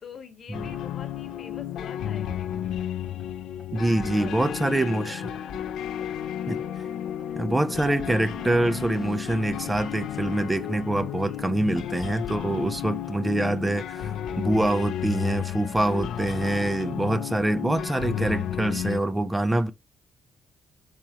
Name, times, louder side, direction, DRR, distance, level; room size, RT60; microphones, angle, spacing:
voice 1, 0.0-2.6 4.0-6.2 7.2-7.4 11.2-11.4 16.3-16.5, left 6 dB, 55° left, 1.0 m, -46 dB
sound 1, 0.5-19.0, left 10 dB, 80° left, 0.5 m, -33 dB
sound 2, 2.8-2.9 3.2-3.3 3.6-3.7 4.0-4.1 4.4-5.7 6.0-9.2, right 4 dB, 35° right, 1.0 m, -48 dB
voice 2, 3.7-5.3 6.5-6.6 7.4-19.7, right 1 dB, 15° right, 0.4 m, -25 dB
4.2 x 3.6 x 2.8 m
cardioid pair, 90°, 0 cm